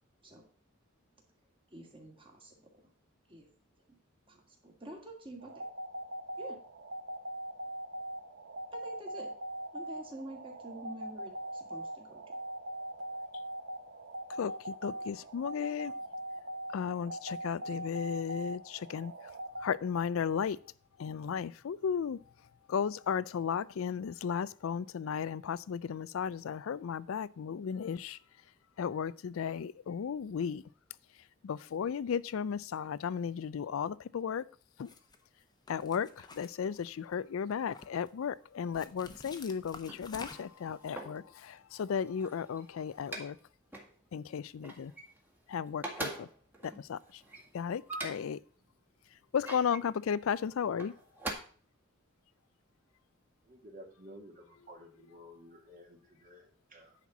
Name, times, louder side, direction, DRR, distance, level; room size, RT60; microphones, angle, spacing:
voice 1, 1.7-2.8 3.3-3.5 3.9-4.0 4.3-5.6 6.4-6.6 8.7-9.3 9.7-12.4, right 1 dB, 25° right, 2.4 m, -48 dB
sound 1, 5.4-19.6, right 1 dB, 55° right, 1.1 m, -42 dB
voice 2, 14.3-15.9 16.7-19.3 19.6-20.6 21.0-22.2 22.7-28.2 28.8-30.6 31.4-34.5 34.8-34.9 35.7-43.4 44.1-44.9 45.5-46.3 46.6-47.2 47.5-48.4 49.3-50.9, left 7 dB, 70° left, 0.4 m, -35 dB
sound 2, 34.8-35.2 35.7-37.1 37.5-38.1 38.7-40.7, left 3 dB, 20° left, 0.9 m, -49 dB
sound 3, 39.7-41.3 41.9-43.4 43.7-43.9 44.3-45.4 45.7-48.4 49.1-49.8 50.6-51.3, right 2 dB, 10° right, 1.7 m, -43 dB
voice 3, 53.4-57.0, equal, 40° right, 2.3 m, -53 dB
10.0 x 4.4 x 7.0 m
head